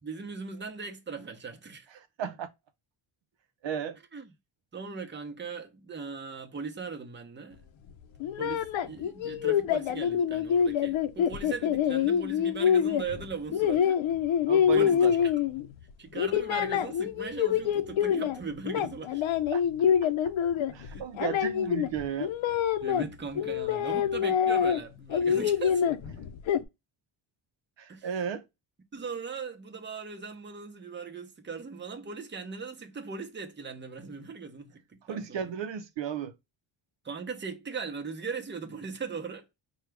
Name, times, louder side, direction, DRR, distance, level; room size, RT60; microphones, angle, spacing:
voice 1, 0.0-1.9 4.1-4.3 4.7-7.6 8.4-14.0 14.7-15.3 16.0-19.2 20.8-21.1 22.8-26.0 27.9-28.1 28.9-35.6 37.0-39.5, right 5 dB, 25° right, 0.8 m, -39 dB
voice 2, 1.9-2.5 3.6-4.0 14.5-15.1 19.5-19.6 20.7-22.3 27.8-28.4 35.1-36.3, right 8 dB, 65° right, 0.7 m, -34 dB
sound 1, 8.2-15.8 16.1-18.4 18.6-23.1 23.4-24.8 25.1-26.6, left 8 dB, 75° left, 0.7 m, -26 dB
4.6 x 2.3 x 3.3 m
cardioid pair, 100°, 47 cm